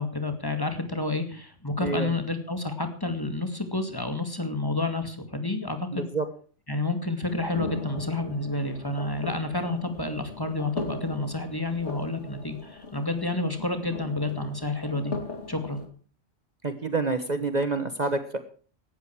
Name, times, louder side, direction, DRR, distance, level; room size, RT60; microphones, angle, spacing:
voice 1, 0.0-6.1 6.7-15.1 15.5-15.8, left 2 dB, 20° left, 7 dB, 2.3 m, -30 dB
voice 2, 5.9-6.2 16.6-18.4, right 3 dB, 40° right, 9 dB, 1.3 m, -27 dB
sound 1, 7.3-15.9, left 3 dB, 70° left, 3.1 m, -39 dB
17.5 x 13.0 x 4.7 m, 0.41 s
omnidirectional pair, 1.2 m